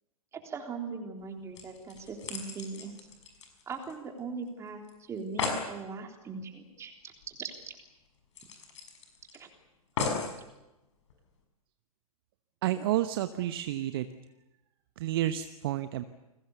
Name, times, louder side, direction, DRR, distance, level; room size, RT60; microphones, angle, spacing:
voice 1, 0.3-2.9 3.7-7.5 9.3-9.5, right 5 dB, 15° right, 3 dB, 3.6 m, -40 dB
sound 1, 1.2-1.3 1.6-4.2 4.5-4.6 4.9-5.0 5.2-5.7 7.2-7.3 7.6-7.7 8.4-9.4 10.0-10.4 11.1-11.2, left 5 dB, 50° left, 6.2 m, -36 dB
voice 2, 12.6-14.1 15.0-16.0, right 13 dB, 40° right, 10 dB, 1.0 m, -30 dB
29.5 x 21.5 x 7.0 m, 0.99 s
figure-of-eight pair, 110°, 19 cm